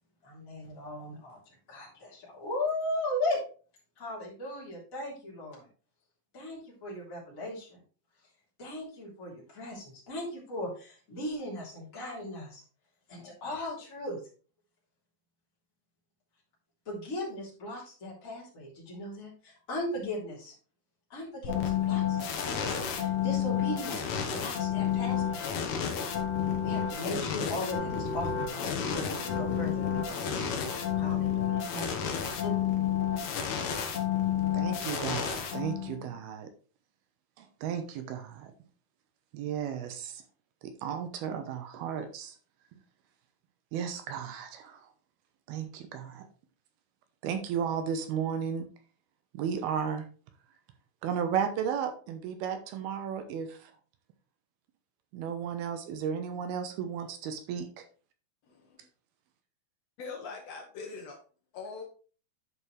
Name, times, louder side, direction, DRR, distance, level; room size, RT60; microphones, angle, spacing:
voice 1, 0.2-1.4 1.7-3.4 4.0-5.7 6.3-7.8 8.6-12.6 13.1-14.2 16.8-20.5 21.1-24.0 24.3-25.5 26.6-30.3 31.0-32.5, left 1 dB, 20° left, -5 dB, 3.3 m, -37 dB
sound 1, 21.4-36.1, left 8 dB, 65° left, 2.1 m, -30 dB
voice 2, 34.5-36.5 37.4-38.5 39.3-40.2 40.6-42.3 43.7-44.9 45.5-46.3 47.2-48.7 49.3-50.1 51.0-53.7 55.1-57.8, right 7 dB, 80° right, 7 dB, 2.8 m, -34 dB
voice 3, 58.5-58.8 60.0-61.2 61.5-61.8, left 4 dB, 85° left, 2 dB, 1.5 m, -42 dB
11.0 x 5.3 x 3.2 m, 0.38 s
omnidirectional pair, 4.6 m